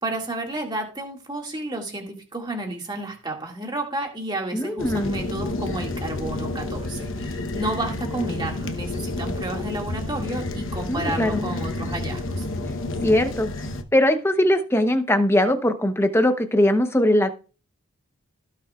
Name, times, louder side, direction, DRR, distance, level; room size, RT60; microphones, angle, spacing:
voice 1, 0.0-12.5, right 2 dB, 20° right, 1 dB, 2.0 m, -31 dB
voice 2, 4.5-5.2 10.9-11.5 13.0-13.5 13.9-17.3, left 1 dB, 10° left, 8 dB, 0.8 m, -20 dB
sound 1, 4.8-13.8, left 2 dB, 65° left, 1.0 m, -30 dB
17.0 x 6.4 x 2.4 m, 0.36 s
head